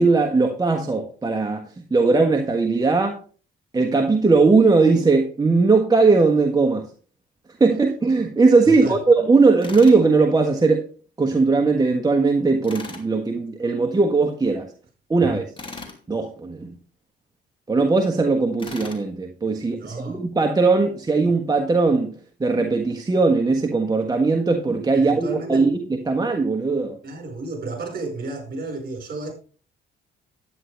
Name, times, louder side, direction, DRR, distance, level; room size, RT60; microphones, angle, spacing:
voice 1, 0.0-3.2 3.7-6.9 7.6-10.9 11.2-14.7 15.1-15.4 16.1-16.7 17.7-22.1 22.4-27.0, right 3 dB, 20° right, 1.4 m, -19 dB
voice 2, 8.6-9.0 19.8-20.2 25.0-25.7 27.0-29.3, right 3 dB, 50° right, 5.0 m, -32 dB
Tools, 9.6-10.0 12.6-13.1 15.6-16.0 18.6-19.0, left 3 dB, 25° left, 2.6 m, -37 dB
11.0 x 9.3 x 3.4 m
cardioid pair, 90°, 20 cm